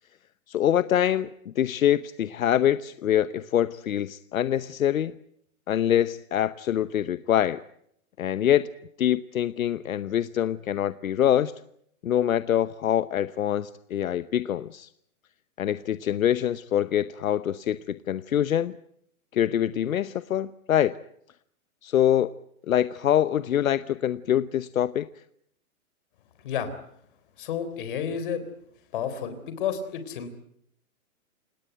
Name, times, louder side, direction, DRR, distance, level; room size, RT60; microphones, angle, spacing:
voice 1, 0.5-5.1 5.7-7.6 8.2-8.7 9.0-11.5 12.0-14.9 15.6-18.8 19.3-21.0 21.8-22.3 22.7-25.1, left 10 dB, 70° left, 14 dB, 1.0 m, -24 dB
voice 2, 27.4-28.4 28.9-30.3, left 8 dB, 35° left, 10 dB, 3.6 m, -31 dB
29.0 x 18.0 x 9.2 m, 0.72 s
hypercardioid pair, 175°, 43 cm